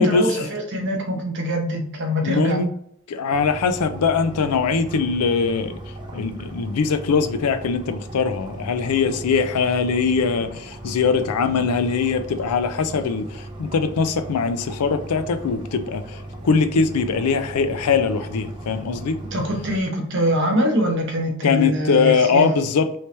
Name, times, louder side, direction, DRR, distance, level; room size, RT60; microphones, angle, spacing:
voice 1, 0.0-2.6 19.3-22.5, equal, 55° right, 0.8 m, -23 dB
voice 2, 2.2-2.7 3.1-5.8 6.1-16.2 16.4-19.2 21.4-22.9, left 5 dB, 90° left, 0.4 m, -21 dB
sound 1, 3.3-19.8, right 1 dB, 20° right, 0.6 m, -37 dB
3.2 x 2.9 x 3.2 m
head